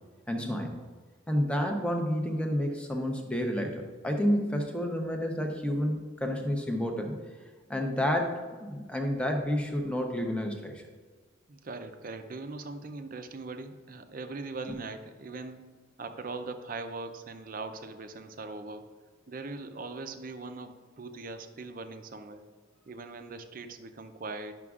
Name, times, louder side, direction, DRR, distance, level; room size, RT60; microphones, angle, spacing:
voice 1, 0.3-0.7 1.3-7.1 7.7-10.8, equal, 5° left, 2 dB, 0.7 m, -30 dB
voice 2, 11.5-15.6 16.0-18.9 19.3-22.4 22.9-24.5, right 3 dB, 45° right, 8 dB, 0.5 m, -40 dB
10.5 x 6.0 x 2.4 m, 1.4 s
head